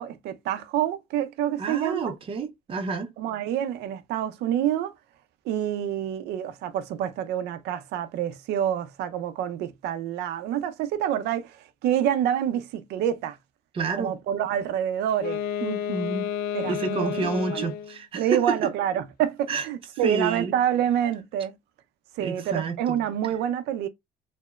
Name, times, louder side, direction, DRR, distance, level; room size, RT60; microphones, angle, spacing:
voice 1, 0.0-2.1 3.2-4.9 5.5-13.4 14.0-15.4 16.5-17.7 18.1-21.5 22.2-23.9, right 10 dB, 80° right, 0.5 m, -27 dB
voice 2, 1.6-3.1 13.7-14.1 15.6-16.2 16.6-18.4 19.5-19.7 20.0-20.5 22.2-23.0, right 4 dB, 35° right, 0.5 m, -29 dB
Wind instrument woodwind instrument, 15.1-18.0, left 9 dB, 65° left, 0.5 m, -31 dB
2.8 x 2.0 x 2.3 m
cardioid pair, 110°, 17 cm